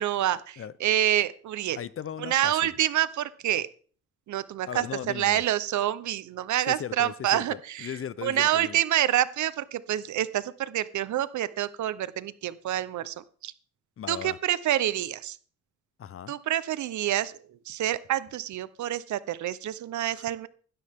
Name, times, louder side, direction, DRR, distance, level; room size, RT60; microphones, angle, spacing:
voice 1, 0.0-1.8 2.2-3.7 4.3-4.8 5.1-7.9 8.2-13.1 13.4-13.5 14.1-15.4 16.3-17.3 17.7-20.5, right 12 dB, 70° right, 16 dB, 1.0 m, -27 dB
voice 2, 1.8-2.7 4.6-5.4 6.7-8.8 14.0-14.4 16.0-16.3 20.2-20.3, left 9 dB, 45° left, 18 dB, 0.8 m, -37 dB
15.5 x 12.5 x 3.7 m, 0.43 s
cardioid pair, 90°, 30 cm